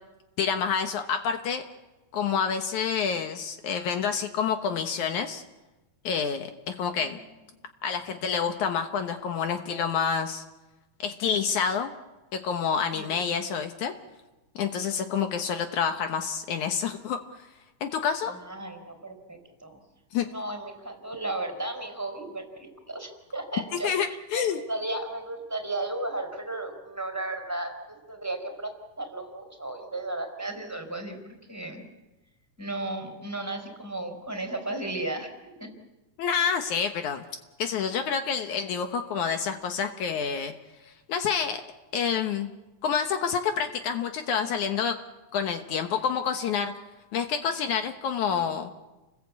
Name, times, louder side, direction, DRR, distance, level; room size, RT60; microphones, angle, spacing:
voice 1, 0.4-1.6 2.1-5.4 6.0-7.2 7.8-10.4 11.0-11.9 12.3-13.9 14.6-17.2 17.8-18.4 20.1-20.3 23.8-24.6 36.2-37.2 37.6-40.5 41.1-41.6 41.9-42.5 42.8-45.0 45.3-46.7 47.1-48.7, left 7 dB, 70° left, 6 dB, 2.5 m, -28 dB
voice 2, 18.3-19.8 20.2-28.7 29.0-31.8 32.6-35.3 35.6-35.7 48.3-48.6, right 2 dB, 5° right, 5 dB, 4.2 m, -35 dB
30.0 x 21.0 x 8.6 m, 1.1 s
omnidirectional pair, 3.6 m